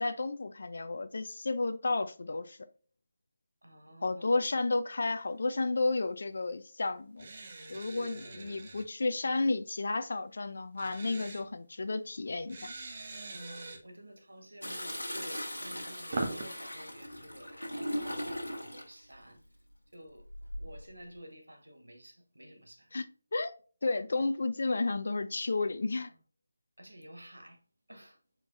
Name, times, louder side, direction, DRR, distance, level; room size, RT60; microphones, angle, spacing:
voice 1, 0.0-2.6 4.0-7.3 7.7-12.7 22.9-23.5 23.8-26.1, left 3 dB, 55° left, 0.5 m, -32 dB
voice 2, 3.6-4.3 8.0-8.7 13.3-19.4 19.9-20.3 20.6-22.8 26.8-27.6 27.9-28.2, equal, 80° right, 1.1 m, -51 dB
sound 1, 7.2-8.8 10.7-11.4 12.5-13.8 15.5-16.4, right 3 dB, 45° right, 1.1 m, -41 dB
Toilet flush, 14.6-18.9 20.3-20.8, equal, 90° left, 1.4 m, -38 dB
4.5 x 4.2 x 2.4 m
figure-of-eight pair, 155°, 0 cm